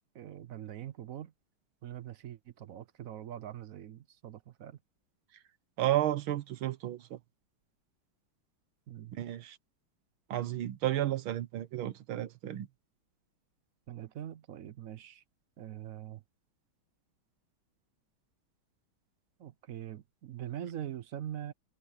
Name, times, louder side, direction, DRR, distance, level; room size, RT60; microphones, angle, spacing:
voice 1, 0.1-1.3 1.8-4.8 8.9-9.1 13.9-15.2 15.6-16.2 19.4-21.5, right 11 dB, 65° right, 0.8 m, -43 dB
voice 2, 5.8-7.2 9.1-9.6 10.3-12.7, right 13 dB, 85° right, 1.8 m, -32 dB
omnidirectional pair, 2.2 m